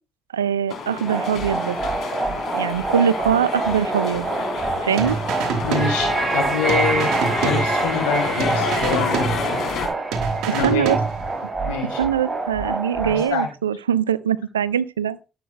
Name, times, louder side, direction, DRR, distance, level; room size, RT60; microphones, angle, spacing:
voice 1, 0.3-1.8 2.5-4.3 4.8-5.2 10.6-11.0 12.0-15.2, right 8 dB, 90° right, 0.3 m, -22 dB
sound 1, 0.7-9.9, left 5 dB, 60° left, 3.4 m, -29 dB
sound 2, 1.1-13.3, right 3 dB, 35° right, 5.4 m, -26 dB
sound 3, 5.0-6.4 6.7-8.1 8.4-9.8 10.1-11.4, right 5 dB, 70° right, 1.4 m, -27 dB
voice 2, 5.6-7.1 7.4-9.7 10.5-10.9 11.6-12.0 13.0-13.5, left 6 dB, 80° left, 4.1 m, -26 dB
14.0 x 8.0 x 2.2 m
hypercardioid pair, 45°, 0 cm